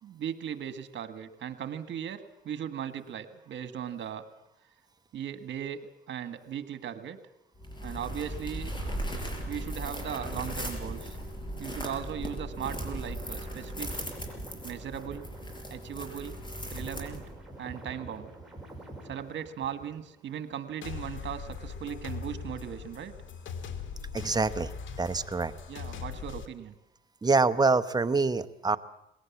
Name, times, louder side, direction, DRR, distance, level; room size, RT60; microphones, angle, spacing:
voice 1, 0.0-4.2 5.1-7.2 7.8-8.7 9.5-11.2 11.6-13.9 14.6-15.2 15.7-16.4 16.7-17.2 17.6-18.3 19.0-23.1 25.7-26.7, right 9 dB, 65° right, 10 dB, 1.7 m, -38 dB
sound 1, 7.6-17.5, equal, 25° left, 5.7 m, -38 dB
sound 2, 8.7-16.2 16.5-20.2 20.5-20.7, right 2 dB, 5° right, 5.5 m, -45 dB
sound 3, 20.8-26.5, left 6 dB, 75° left, 2.0 m, -40 dB
voice 2, 24.1-25.5 27.2-28.8, right 3 dB, 20° right, 11 dB, 0.9 m, -26 dB
20.5 x 18.0 x 8.5 m, 0.86 s
cardioid pair, 90°, 20 cm